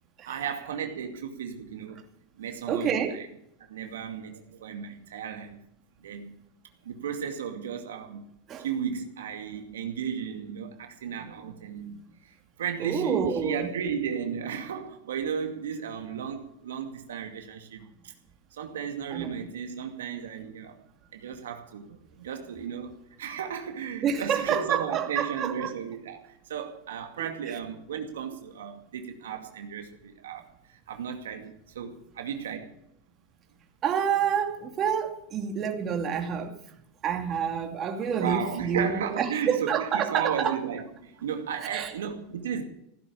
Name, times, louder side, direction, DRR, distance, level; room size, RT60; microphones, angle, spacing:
voice 1, 0.2-2.0 2.4-3.3 3.7-5.6 6.0-6.3 6.8-8.3 8.6-18.1 18.5-20.8 21.1-32.7 38.1-42.6, right 7 dB, 85° right, 2.3 m, -34 dB
voice 2, 2.7-3.2 8.5-8.7 12.8-13.7 19.1-19.4 24.0-25.7 27.2-27.6 33.8-36.6 37.0-40.6 41.6-41.9, right 7 dB, 40° right, 2.7 m, -28 dB
16.5 x 11.0 x 7.0 m
hypercardioid pair, 100°, 0 cm